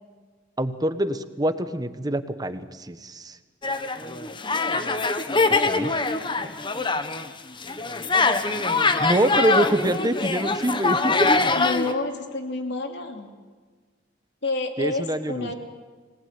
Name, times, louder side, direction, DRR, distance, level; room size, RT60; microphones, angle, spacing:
voice 1, 0.6-3.4 5.5-5.9 9.0-11.3 14.8-15.5, right 1 dB, 20° right, 11 dB, 1.2 m, -25 dB
sound 1, 3.6-7.3 7.6-11.9, left 3 dB, 25° left, 1.2 m, -23 dB
voice 2, 11.6-13.3 14.4-15.6, left 3 dB, 60° left, 4 dB, 3.2 m, -29 dB
26.5 x 19.0 x 9.5 m, 1.4 s
head